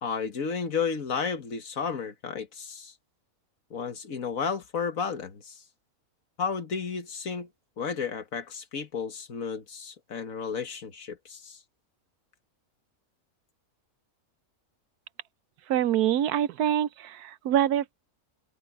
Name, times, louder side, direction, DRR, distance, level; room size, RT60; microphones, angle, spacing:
voice 1, 0.0-2.9 3.7-5.6 6.4-7.5 7.8-11.6, left 6 dB, 65° left, 1.8 m, -32 dB
voice 2, 15.7-17.9, right 11 dB, 85° right, 1.2 m, -25 dB
omnidirectional pair, 1.6 m